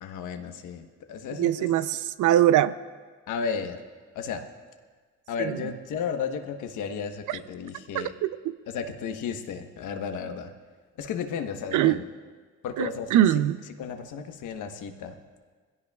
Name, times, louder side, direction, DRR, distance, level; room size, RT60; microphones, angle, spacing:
voice 1, 0.0-1.7 3.3-3.8 4.1-4.4 5.3-8.1 8.7-10.5 11.0-12.0 12.6-13.1 13.8-15.2, left 6 dB, 80° left, 6 dB, 1.2 m, -33 dB
voice 2, 1.4-2.7 5.4-5.5 7.3-7.4 7.9-8.3 11.7-12.0 12.8-13.6, right 12 dB, 80° right, 14 dB, 0.6 m, -22 dB
21.0 x 16.5 x 2.4 m, 1.5 s
cardioid pair, 90°, 30 cm